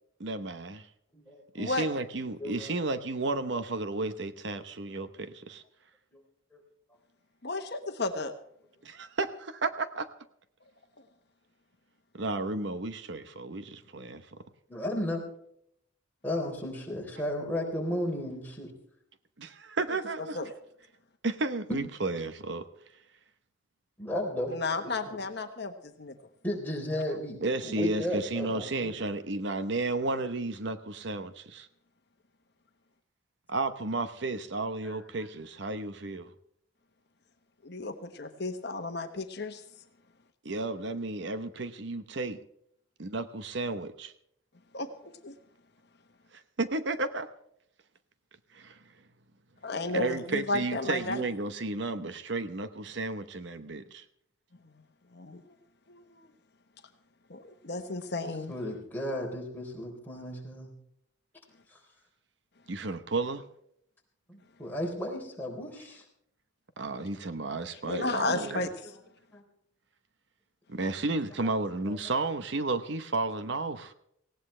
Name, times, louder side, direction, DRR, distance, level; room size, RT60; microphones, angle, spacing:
voice 1, 0.2-0.9 1.5-5.6 8.8-10.1 12.1-14.4 19.4-20.5 21.2-22.7 27.1-31.7 33.5-36.3 40.4-42.4 43.0-44.1 46.3-47.3 48.5-48.8 49.9-54.0 62.7-63.5 66.8-68.7 70.7-73.9, right 2 dB, 60° right, 0.9 m, -33 dB
voice 2, 1.1-1.7 2.4-2.7 6.1-6.2 14.7-15.2 16.2-18.7 21.7-21.8 24.0-24.5 25.1-25.2 26.4-29.0 34.8-35.0 58.5-60.7 61.7-61.8 64.3-66.0 69.3-69.4 71.4-71.5, left 1 dB, 10° left, 3.6 m, -34 dB
voice 3, 7.4-8.3 11.0-11.1 20.3-20.5 24.5-26.1 37.6-39.6 44.7-45.3 49.6-51.2 54.6-54.7 55.1-55.5 55.9-56.3 57.3-58.6 67.7-68.7, left 2 dB, 55° left, 1.2 m, -33 dB
19.0 x 17.0 x 3.3 m
head